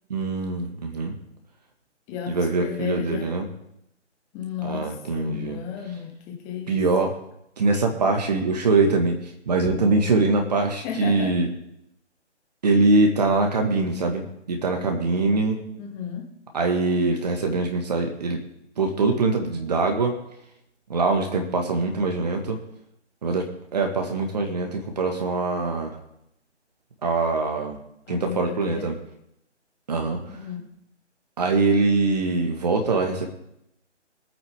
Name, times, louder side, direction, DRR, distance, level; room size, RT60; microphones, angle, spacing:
voice 1, 0.1-1.2 2.3-3.5 4.6-5.6 6.7-7.2 7.6-9.2 9.5-11.5 12.6-15.6 16.5-18.4 18.8-20.2 20.9-22.6 23.2-26.0 27.0-27.8 28.1-28.9 29.9-30.2 31.4-33.3, right 3 dB, 35° right, 3 dB, 1.8 m, -23 dB
voice 2, 2.1-3.3 4.3-6.9 10.8-11.4 15.8-16.3 28.1-28.9 30.3-30.7, left 8 dB, 10° left, 2 dB, 1.1 m, -33 dB
23.0 x 8.9 x 3.7 m, 0.80 s
figure-of-eight pair, 150°, 35 cm